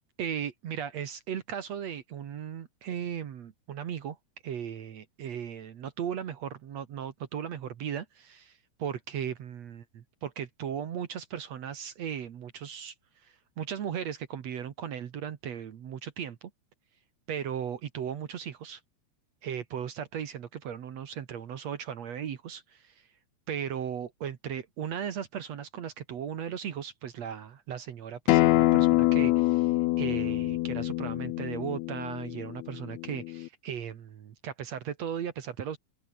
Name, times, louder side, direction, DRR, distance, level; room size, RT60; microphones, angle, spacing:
voice 1, 0.2-4.2 4.4-12.9 13.2-16.4 17.3-18.8 19.4-22.9 23.5-35.8, right 8 dB, 60° right, 2.7 m, -37 dB
Acoustic guitar, 28.3-33.5, left 18 dB, 80° left, 1.8 m, -25 dB
open air
omnidirectional pair, 3.5 m